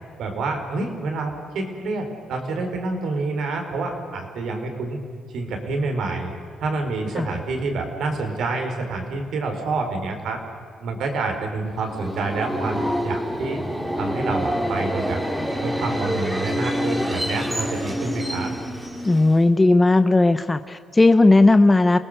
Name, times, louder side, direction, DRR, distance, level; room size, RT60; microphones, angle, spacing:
voice 1, 0.2-5.0 5.3-6.3 6.6-10.4 10.8-13.6 14.0-15.2 15.6-18.5, right 3 dB, 75° right, 4 dB, 4.3 m, -27 dB
Subway metro underground, 11.7-19.5, equal, 10° right, 3.0 m, -27 dB
voice 2, 19.0-22.0, left 2 dB, 20° left, 11 dB, 0.8 m, -16 dB
28.5 x 19.0 x 6.7 m, 2.1 s
cardioid pair, 90°, 0 cm